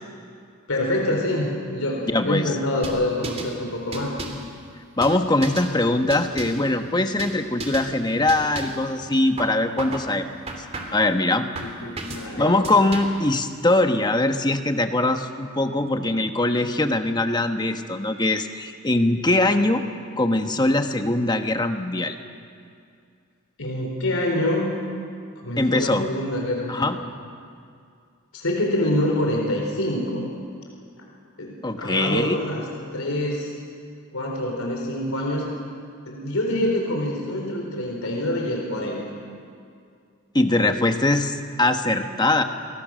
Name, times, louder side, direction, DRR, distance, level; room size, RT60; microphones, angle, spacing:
voice 1, 0.7-4.1 11.6-12.6 23.6-24.7 25.4-26.9 28.3-30.2 31.4-32.6 32.9-33.5 34.1-35.5 36.1-39.0, left 1 dB, 75° left, 0 dB, 4.2 m, -26 dB
voice 2, 2.1-2.5 5.0-10.3 10.9-11.4 12.4-19.8 20.2-22.2 25.6-26.1 26.7-27.0 31.6-32.4 40.3-42.4, left 2 dB, 20° left, 6 dB, 1.3 m, -22 dB
sound 1, 2.8-3.5 3.9-4.5 5.0-5.7 6.1-6.7 7.2-7.4 7.6-7.9 8.3-8.8 9.4-10.1 10.5-11.1 11.6-12.3 12.6-13.3, right 2 dB, 30° right, 2.9 m, -34 dB
29.0 x 23.0 x 6.5 m, 2.3 s
head